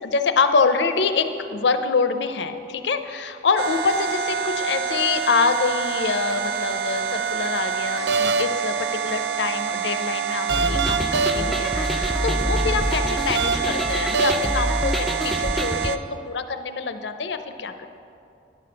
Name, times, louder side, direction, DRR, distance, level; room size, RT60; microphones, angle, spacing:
voice 1, 0.0-17.9, left 4 dB, 80° left, 9 dB, 0.5 m, -25 dB
sound 1, 3.6-16.0, right 6 dB, 75° right, 0.4 m, -26 dB
sound 2, 10.5-15.9, left 1 dB, ahead, 0.4 m, -26 dB
10.5 x 5.2 x 6.7 m, 2.6 s
head